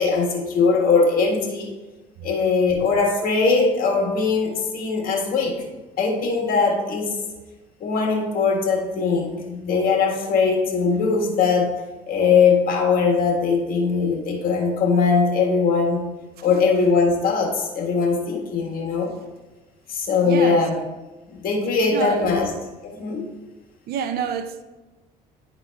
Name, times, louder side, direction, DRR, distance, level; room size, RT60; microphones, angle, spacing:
voice 1, 0.0-1.7 2.2-5.6 6.0-7.1 7.8-11.7 12.1-16.0 16.4-19.1 19.9-20.8 21.3-22.5 22.8-23.3, left 4 dB, 60° left, 1.7 m, -20 dB
voice 2, 20.2-20.6 21.9-22.4 23.9-24.6, right 8 dB, 65° right, 0.5 m, -27 dB
11.0 x 3.9 x 3.4 m
cardioid pair, 110°, 17 cm